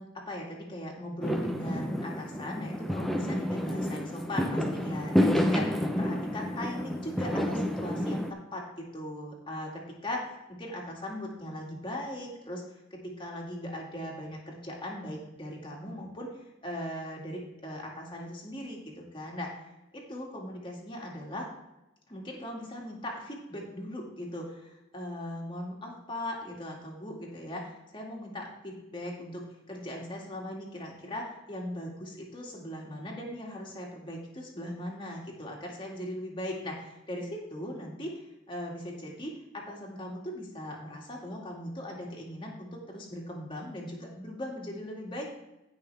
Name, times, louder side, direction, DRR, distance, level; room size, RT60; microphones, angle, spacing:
voice 1, 0.0-10.2 10.6-12.6 12.9-16.3 16.6-19.6 19.9-21.5 22.1-38.2 38.5-45.3, left 1 dB, 25° left, -1 dB, 2.2 m, -39 dB
Fireworks, 1.2-8.3, equal, ahead, 0.7 m, -29 dB
16.0 x 5.7 x 3.4 m, 0.97 s
head